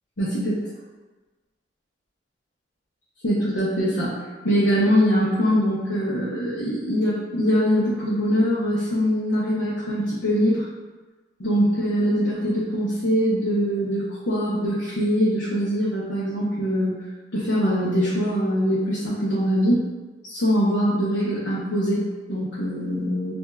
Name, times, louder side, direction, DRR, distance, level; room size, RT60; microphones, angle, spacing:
voice 1, 0.2-0.6 3.2-10.7 11.4-17.0 17.3-19.8 20.3-23.4, equal, 80° left, -9 dB, 0.9 m, -23 dB
5.6 x 2.7 x 2.3 m, 1.2 s
head